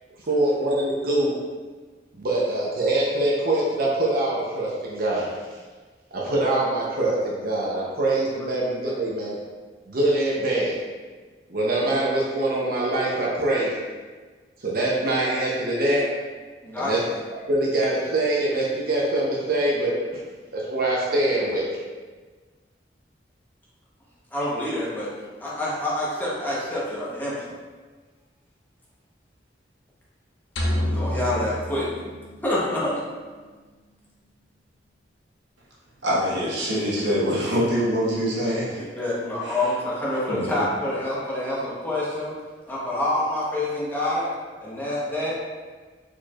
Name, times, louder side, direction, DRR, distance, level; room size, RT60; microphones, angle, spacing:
voice 1, 0.3-1.3 2.2-5.4 6.1-9.4 9.9-10.8 11.5-13.7 14.6-16.0 16.8-17.0 17.5-19.9 20.5-21.7, right 1 dB, 55° right, -4 dB, 0.8 m, -24 dB
voice 2, 16.6-16.9 24.3-25.1 25.4-27.5 30.9-31.9 32.4-33.0 38.8-42.4 42.7-45.3, left 1 dB, 10° left, -7 dB, 1.0 m, -27 dB
sound 1, 30.6-32.8, left 1 dB, 85° left, 0.7 m, -28 dB
voice 3, 36.0-38.8 39.4-39.7 40.3-40.7, equal, 80° right, -6 dB, 1.3 m, -25 dB
4.5 x 4.5 x 2.4 m, 1.4 s
head